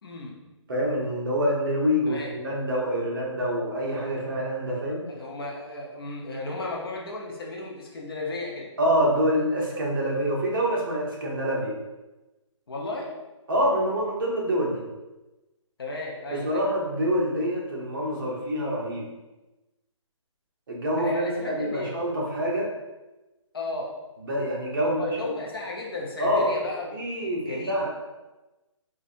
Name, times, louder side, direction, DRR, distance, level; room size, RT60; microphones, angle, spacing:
voice 1, 0.0-0.3 2.1-2.3 5.1-8.7 12.7-13.1 15.8-16.6 21.0-21.9 23.5-23.9 25.0-27.9, left 2 dB, 45° left, -2 dB, 0.7 m, -34 dB
voice 2, 0.7-5.1 8.8-11.7 13.5-14.8 16.3-19.1 20.7-22.7 24.2-25.2 26.2-26.5 26.9-27.9, equal, 45° right, -3 dB, 0.8 m, -26 dB
4.2 x 2.5 x 2.5 m, 1.1 s
hypercardioid pair, 175°, 16 cm